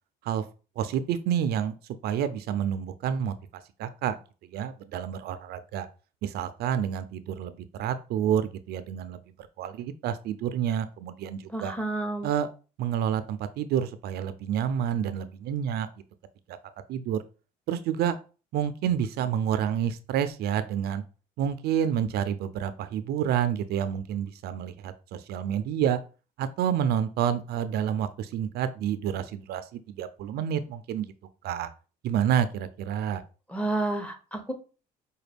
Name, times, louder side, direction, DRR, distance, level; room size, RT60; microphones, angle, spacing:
voice 1, 0.8-1.7 2.0-3.3 3.8-4.2 4.5-5.9 6.2-9.2 9.6-11.7 12.2-12.5 12.8-15.9 16.5-16.6 16.9-17.2 17.7-18.2 18.5-21.0 21.4-26.0 26.4-31.1 31.4-31.7 32.0-33.2, right 9 dB, 70° right, 12 dB, 0.4 m, -29 dB
voice 2, 11.5-12.3 33.5-34.5, right 2 dB, 10° left, 6 dB, 0.7 m, -30 dB
5.0 x 2.2 x 3.3 m, 0.35 s
cardioid pair, 110°, 17 cm